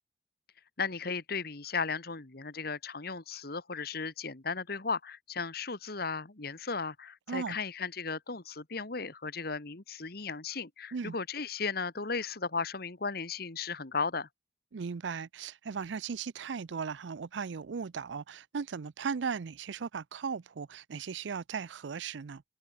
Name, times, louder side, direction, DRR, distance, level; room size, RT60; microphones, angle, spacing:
voice 1, 0.8-14.3, left 4 dB, 60° left, 1.7 m, -35 dB
voice 2, 14.7-22.4, right 6 dB, 85° right, 0.5 m, -37 dB
head